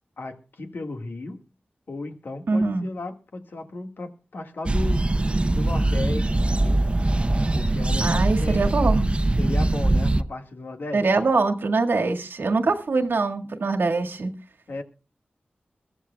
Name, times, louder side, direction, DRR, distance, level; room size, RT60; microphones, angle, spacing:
voice 1, 0.2-1.4 1.9-5.2 5.5-7.0 7.5-8.6 9.4-11.2 14.7-14.8, left 2 dB, 75° left, 1.8 m, -35 dB
voice 2, 2.5-2.9 8.0-9.0 10.9-14.3, right 3 dB, 85° right, 1.8 m, -23 dB
sound 1, 4.6-10.2, right 2 dB, 30° right, 0.8 m, -22 dB
22.5 x 14.0 x 2.3 m
wide cardioid pair, 80°, 4 cm